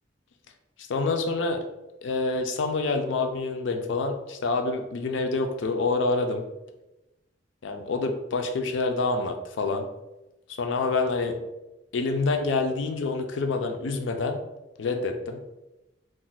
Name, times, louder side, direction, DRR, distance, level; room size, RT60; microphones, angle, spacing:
voice 1, 0.8-1.6 2.0-6.4 7.6-9.9 10.5-11.4 11.9-14.4 14.8-15.4, left 3 dB, 90° left, 5 dB, 0.4 m, -27 dB
2.4 x 2.1 x 3.9 m, 0.98 s
head